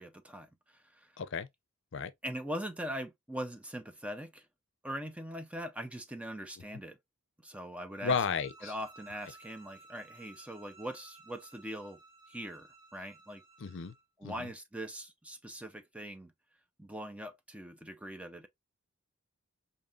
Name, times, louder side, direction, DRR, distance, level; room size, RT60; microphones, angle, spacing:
voice 1, 0.0-1.1 2.2-4.5 4.8-7.0 7.4-8.2 8.6-12.0 12.3-13.4 14.2-16.3 16.8-18.5, equal, 5° right, 0.4 m, -41 dB
voice 2, 1.2-1.5 1.9-2.1 8.0-8.7 13.6-13.9 14.2-14.5, left 5 dB, 65° left, 0.5 m, -33 dB
sound 1, 7.9-14.0, right 3 dB, 50° right, 1.8 m, -57 dB
5.2 x 2.6 x 2.3 m
head